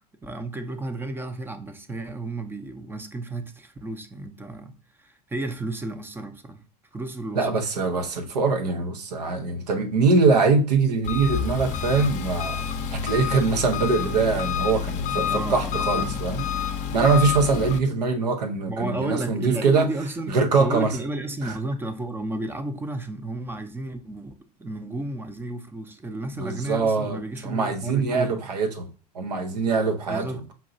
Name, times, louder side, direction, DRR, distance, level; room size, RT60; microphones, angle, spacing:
voice 1, 0.2-6.6 6.9-7.5 15.1-16.2 18.7-28.4 30.1-30.4, right 2 dB, 10° right, 0.6 m, -32 dB
voice 2, 7.3-12.6 12.9-16.5 16.9-19.9 20.3-20.9 21.4-21.5 26.4-28.9 29.1-30.4, right 4 dB, 75° right, 0.8 m, -23 dB
Engine, 11.0-17.8, left 7 dB, 35° left, 0.6 m, -28 dB
5.4 x 2.7 x 2.6 m
figure-of-eight pair, 85°, 21 cm